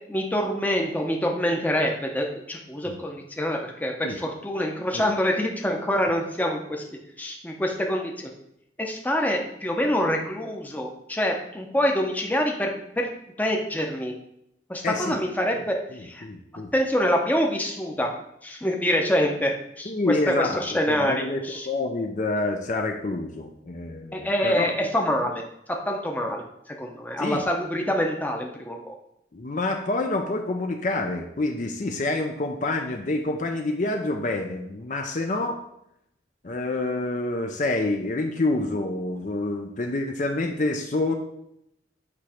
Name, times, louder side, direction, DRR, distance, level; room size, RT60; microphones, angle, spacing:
voice 1, 0.1-6.8 7.2-8.3 8.8-12.7 13.0-13.1 13.4-14.1 14.7-15.7 16.0-16.2 16.7-18.1 18.4-19.5 19.8-19.9 20.3-21.7 24.1-25.4 25.9-26.4 26.8-28.9, equal, 10° left, 1 dB, 0.7 m, -26 dB
voice 2, 14.8-15.2 15.6-15.7 15.9-16.7 19.8-24.9 27.2-27.4 29.3-35.6 36.4-41.1, left 2 dB, 40° left, 4 dB, 0.5 m, -27 dB
8.4 x 3.1 x 4.9 m, 0.79 s
head